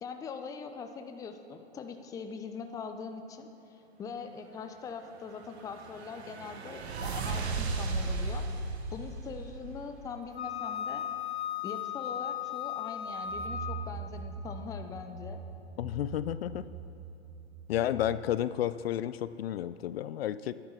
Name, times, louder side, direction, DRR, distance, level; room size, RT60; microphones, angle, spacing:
voice 1, 0.0-3.5 4.0-8.5 8.9-11.0 11.6-15.4, left 5 dB, 10° left, 7 dB, 0.5 m, -42 dB
sound 1, 5.3-10.2, right 3 dB, 75° right, 1.3 m, -36 dB
sound 2, 9.9-10.2 10.5-10.6 13.1-18.2, right 4 dB, 15° right, 2.5 m, -44 dB
Wind instrument woodwind instrument, 10.4-13.9, left 9 dB, 85° left, 1.0 m, -36 dB
voice 2, 15.8-16.7 17.7-20.5, left 12 dB, 65° left, 15 dB, 0.5 m, -31 dB
9.7 x 9.7 x 6.2 m, 3.0 s
hypercardioid pair, 120°, 32 cm